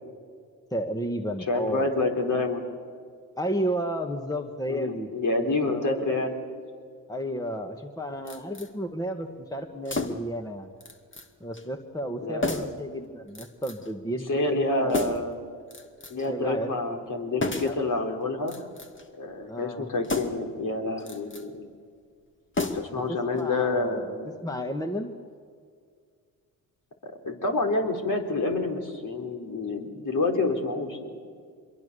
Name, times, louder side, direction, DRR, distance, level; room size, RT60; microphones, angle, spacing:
voice 1, 0.7-1.9 3.4-5.1 5.6-6.2 7.1-10.7 11.4-15.2 16.3-16.7 17.6-17.7 19.5-19.9 22.9-24.0 24.4-25.1, equal, 10° left, 5 dB, 1.8 m, -32 dB
voice 2, 1.5-2.7 4.7-6.4 12.2-12.8 14.3-15.5 16.1-18.6 19.2-21.6 22.7-24.3 27.0-31.1, left 2 dB, 50° left, 2 dB, 4.4 m, -28 dB
sound 1, 8.3-8.7 9.8-10.4 10.8-11.3 11.5-11.7 12.4-12.8 13.3-13.9 14.9-15.3 15.7-16.3 17.4-17.8 18.4-19.1 20.0-20.5 21.0-21.5 22.5-23.1 23.4-23.5, left 3 dB, 30° left, 2.4 m, -32 dB
25.5 x 22.0 x 7.1 m, 2.1 s
supercardioid pair, 60°, 41 cm